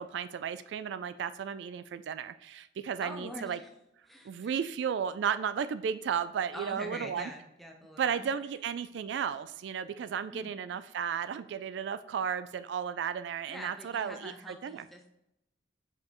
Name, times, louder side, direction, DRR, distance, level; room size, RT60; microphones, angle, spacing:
voice 1, 0.0-3.6 4.2-7.3 8.0-14.9, right 7 dB, 70° right, 13 dB, 0.3 m, -34 dB
voice 2, 3.0-3.7 4.1-4.5 6.5-8.3 10.3-10.5 13.5-15.1, equal, ahead, 1 dB, 0.8 m, -44 dB
7.3 x 5.3 x 3.0 m, 0.85 s
head